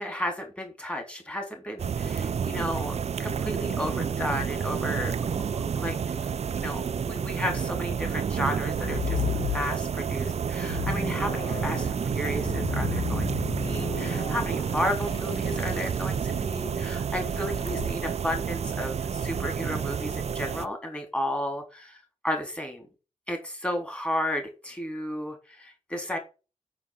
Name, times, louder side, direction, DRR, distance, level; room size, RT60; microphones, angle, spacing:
voice 1, 0.0-5.1 5.5-6.0 6.5-22.9 23.3-26.2, left 1 dB, 10° left, 4 dB, 3.6 m, -33 dB
sound 1, 1.8-20.7, right 7 dB, 55° right, 0.5 m, -30 dB
sound 2, 8.7-10.1 10.5-16.0 17.6-17.9, left 8 dB, 45° left, 0.8 m, -34 dB
6.9 x 6.4 x 7.3 m, 0.31 s
wide cardioid pair, 100°, 13 cm